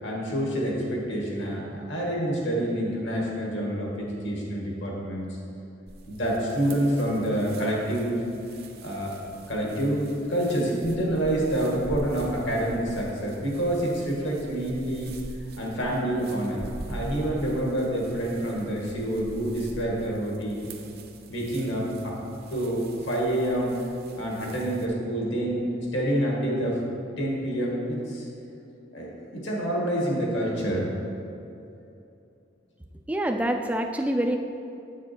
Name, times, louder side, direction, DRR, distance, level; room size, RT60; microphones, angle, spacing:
voice 1, 0.0-5.4 6.1-8.2 8.8-9.1 9.5-15.1 15.6-16.6 16.9-20.7 21.3-22.2 22.5-23.8 24.2-26.8 27.2-28.3 28.9-30.9, right 1 dB, 65° left, -3 dB, 1.8 m, -27 dB
sound 1, 5.9-24.9, right 1 dB, 50° right, 0.7 m, -44 dB
voice 2, 33.1-34.4, right 1 dB, 5° right, 5 dB, 0.4 m, -26 dB
8.3 x 6.3 x 4.4 m, 2.7 s
head